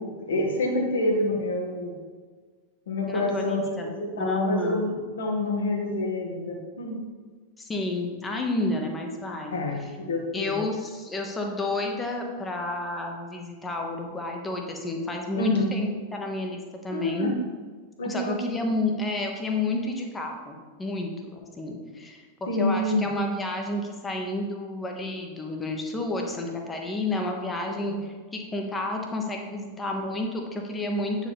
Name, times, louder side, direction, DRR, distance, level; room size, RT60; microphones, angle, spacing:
voice 1, 0.0-2.0 2.9-7.0 9.5-10.6 15.4-15.7 16.9-17.3 18.0-18.4 22.5-23.1 27.7-27.9, left 2 dB, 65° left, 1 dB, 1.4 m, -27 dB
voice 2, 3.1-3.9 4.2-4.9 7.6-9.9 10.3-17.3 18.0-31.3, left 2 dB, 15° left, 2 dB, 1.1 m, -31 dB
8.4 x 4.9 x 3.5 m, 1.5 s
figure-of-eight pair, 90°, 0 cm